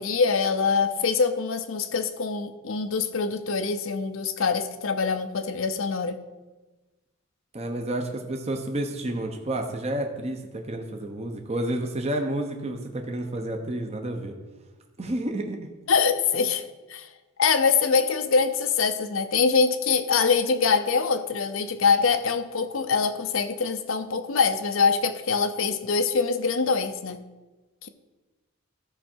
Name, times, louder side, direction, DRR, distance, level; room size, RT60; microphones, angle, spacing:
voice 1, 0.0-6.2 15.9-17.1 17.4-27.2 27.8-27.9, left 5 dB, 65° left, 10 dB, 0.7 m, -24 dB
voice 2, 7.5-14.3 15.0-15.7, right 1 dB, 30° right, 3 dB, 0.8 m, -30 dB
14.0 x 5.7 x 4.5 m, 1.2 s
head